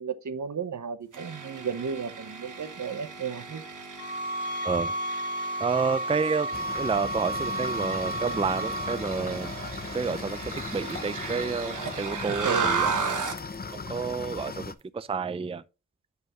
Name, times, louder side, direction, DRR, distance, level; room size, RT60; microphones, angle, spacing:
voice 1, 0.0-3.6 12.3-13.0, right 6 dB, 70° right, 0.9 m, -34 dB
sound 1, 1.1-13.5, right 5 dB, 90° right, 1.2 m, -35 dB
sound 2, 4.0-9.0, right 1 dB, 60° left, 2.2 m, -32 dB
voice 2, 5.6-9.5 9.9-12.9 13.7-15.6, right 5 dB, 20° right, 0.4 m, -30 dB
sound 3, 6.5-14.7, left 4 dB, 30° left, 0.7 m, -38 dB
7.8 x 5.5 x 3.0 m
cardioid pair, 50°, 30 cm